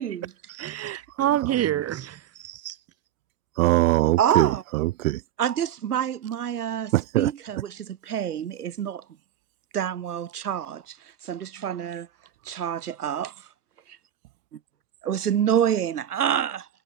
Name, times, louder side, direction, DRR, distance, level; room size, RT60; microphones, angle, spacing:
voice 1, 0.5-2.8, right 12 dB, 30° right, 7.4 m, -27 dB
voice 2, 3.6-5.2 6.9-7.3, right 18 dB, 60° right, 6.4 m, -22 dB
voice 3, 4.2-4.6 5.4-9.0 9.7-11.0 11.2-12.1 12.4-13.3 15.0-16.7, right 9 dB, 75° right, 6.7 m, -27 dB
hypercardioid pair, 105°, 46 cm